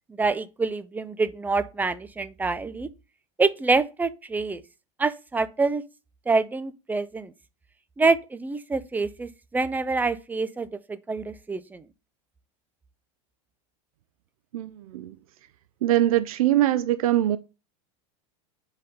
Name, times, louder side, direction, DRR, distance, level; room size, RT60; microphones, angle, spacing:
voice 1, 0.2-2.9 3.4-4.6 5.0-5.8 6.3-7.3 8.0-11.8, right 3 dB, 10° right, 0.5 m, -26 dB
voice 2, 14.5-15.2 15.8-17.4, right 13 dB, 85° right, 0.6 m, -22 dB
5.3 x 4.1 x 5.3 m
supercardioid pair, 130°, 18 cm